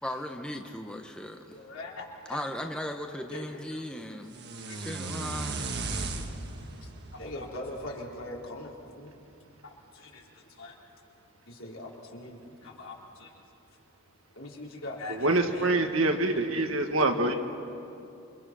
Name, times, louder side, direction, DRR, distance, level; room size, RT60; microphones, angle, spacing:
voice 1, 0.0-1.6 2.3-4.3 4.7-5.6 6.6-6.7, left 1 dB, 5° left, 3 dB, 1.0 m, -37 dB
voice 2, 1.5-2.4 3.3-3.8 4.7-5.0 7.1-9.2 9.6-10.2 10.6-10.7 11.5-13.3 14.4-15.7 16.9-17.3, left 2 dB, 70° left, -2 dB, 4.0 m, -41 dB
sound 1, 4.3-8.4, right 3 dB, 55° right, 1.5 m, -36 dB
voice 3, 15.2-17.3, right 2 dB, 70° right, 4 dB, 1.9 m, -25 dB
28.5 x 25.0 x 6.2 m, 2.8 s
head